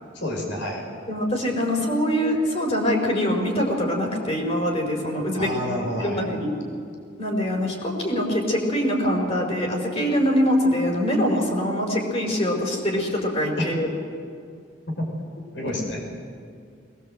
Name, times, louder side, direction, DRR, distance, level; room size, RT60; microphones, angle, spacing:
voice 1, 0.1-0.8 5.3-6.3 13.6-13.7 15.0-15.1 15.5-16.0, equal, 80° left, 1 dB, 5.3 m, -29 dB
voice 2, 1.1-5.5 6.0-6.5 7.2-13.9 15.7-15.8, equal, 35° left, 1 dB, 4.6 m, -24 dB
22.0 x 20.0 x 7.8 m, 2.3 s
head